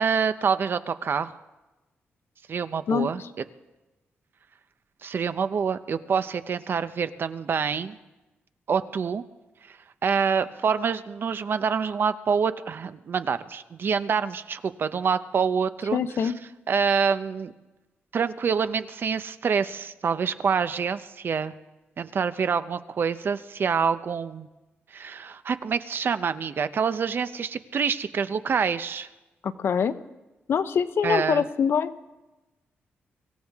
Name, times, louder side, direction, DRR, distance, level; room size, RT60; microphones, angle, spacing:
voice 1, 0.0-1.3 2.5-3.2 5.0-8.0 8.7-9.2 9.7-9.8 10.0-16.0 16.7-17.5 18.1-21.5 22.0-24.5 24.9-29.1 31.0-31.4, right 6 dB, 55° right, 12 dB, 0.7 m, -26 dB
voice 2, 2.9-3.3 15.9-16.4 29.4-30.0 30.5-31.9, left 7 dB, 65° left, 12 dB, 0.8 m, -24 dB
24.5 x 15.5 x 3.6 m, 1.1 s
cardioid pair, 105°, 4 cm